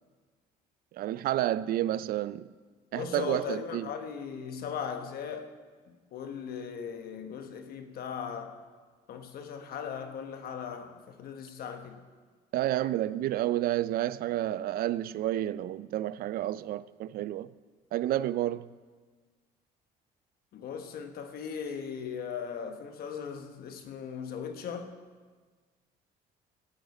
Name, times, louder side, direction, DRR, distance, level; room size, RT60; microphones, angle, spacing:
voice 1, 1.0-2.5 2.9-3.9 12.5-17.5 17.9-18.6, right 13 dB, 60° right, 0.4 m, -30 dB
voice 2, 2.9-5.5 6.1-8.6 9.1-12.0 20.5-24.9, left 7 dB, 65° left, 1.2 m, -38 dB
16.5 x 8.8 x 4.1 m
cardioid pair, 110°, 17 cm